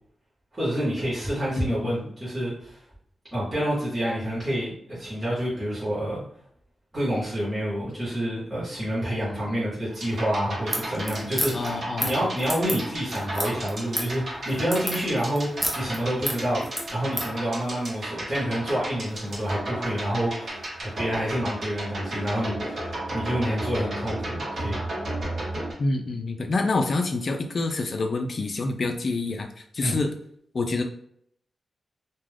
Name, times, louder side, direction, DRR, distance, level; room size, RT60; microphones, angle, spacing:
voice 1, 0.5-2.8 3.3-6.2 6.9-16.6 16.9-24.8 29.8-30.0, equal, 20° right, -9 dB, 1.1 m, -28 dB
voice 2, 1.6-2.0 11.5-12.1 25.8-30.1 30.5-30.8, left 3 dB, 45° left, 5 dB, 0.4 m, -27 dB
sound 1, 9.9-25.7, right 1 dB, 50° right, 1.0 m, -34 dB
sound 2, 10.6-17.3, equal, ahead, 0.6 m, -31 dB
2.4 x 2.3 x 3.3 m, 0.68 s
wide cardioid pair, 135°, 0 cm